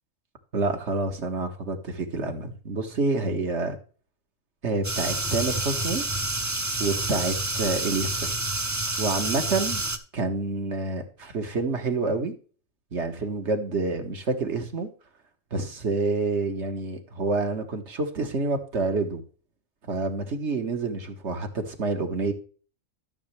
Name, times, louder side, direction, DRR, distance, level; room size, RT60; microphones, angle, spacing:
voice 1, 0.5-3.8 4.6-6.0 6.8-8.3 9.0-9.8 10.1-12.3 12.9-14.9 15.5-19.2 19.9-22.3, right 3 dB, 55° right, 6 dB, 1.8 m, -28 dB
sound 1, 4.8-10.0, right 2 dB, 15° right, 0.7 m, -28 dB
13.0 x 6.9 x 3.4 m, 0.40 s
omnidirectional pair, 1.4 m